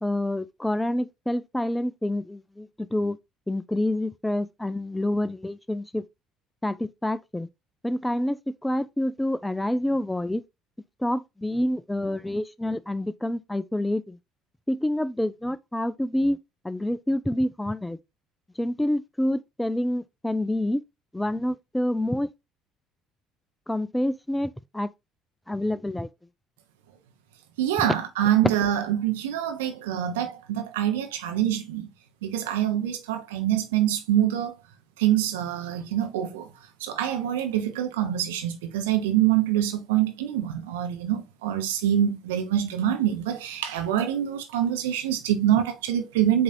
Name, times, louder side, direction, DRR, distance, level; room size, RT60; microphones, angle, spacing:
voice 1, 0.0-2.7 2.9-3.2 3.5-6.0 6.6-7.5 7.8-8.4 8.6-10.4 11.0-14.2 14.7-16.4 16.6-18.0 18.6-20.8 21.1-22.3 23.7-24.9 25.5-26.1, left 1 dB, 10° left, 0.4 m, -27 dB
voice 2, 27.6-31.9 32.2-34.6 35.0-36.5 36.8-46.4, right 11 dB, 70° right, 0.7 m, -25 dB
7.7 x 2.7 x 2.6 m
figure-of-eight pair, 55°, 0 cm